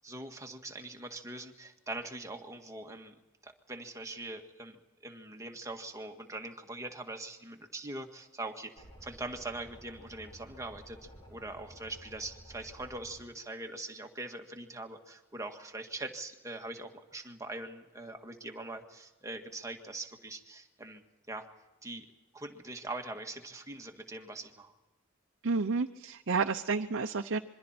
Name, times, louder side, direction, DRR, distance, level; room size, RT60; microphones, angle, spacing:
voice 1, 0.0-21.5 21.8-22.1 22.3-24.7, right 2 dB, 15° right, 4 dB, 1.8 m, -42 dB
sound 1, 8.8-13.2, equal, 25° left, 7.3 m, -53 dB
voice 2, 25.4-27.4, right 4 dB, 65° right, 6 dB, 0.8 m, -30 dB
26.5 x 23.0 x 4.4 m, 1.1 s
head